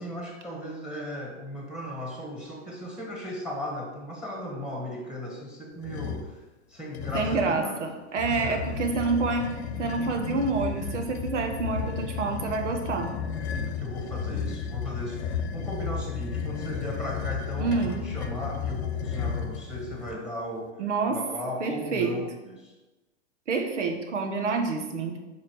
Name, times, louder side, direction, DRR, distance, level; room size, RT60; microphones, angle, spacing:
voice 1, 0.0-6.4 6.7-7.8 8.3-8.6 13.5-20.8 21.1-22.7, equal, 5° right, 0 dB, 1.5 m, -36 dB
sound 1, 5.8-6.3 6.9-7.6 8.2-20.2, left 7 dB, 65° left, 0.9 m, -33 dB
voice 2, 7.1-9.5 9.8-13.1 17.6-18.0 20.8-21.2 21.6-22.2 23.5-25.2, right 4 dB, 90° right, 4 dB, 1.4 m, -28 dB
5.3 x 4.9 x 6.3 m, 1.1 s
hypercardioid pair, 135°, 35 cm